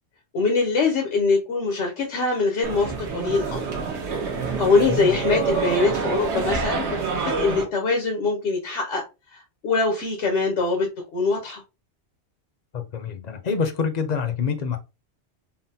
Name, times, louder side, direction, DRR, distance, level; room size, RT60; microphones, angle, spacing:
voice 1, 0.3-3.6 4.6-7.0 7.2-9.0 9.3-10.9 11.1-11.6, left 3 dB, 90° left, 1.1 m, -23 dB
sound 1, 2.6-7.6, right 5 dB, 75° right, 1.1 m, -27 dB
voice 2, 4.9-5.2 12.7-14.8, left 6 dB, 50° left, 0.5 m, -26 dB
3.8 x 2.0 x 2.6 m
omnidirectional pair, 1.2 m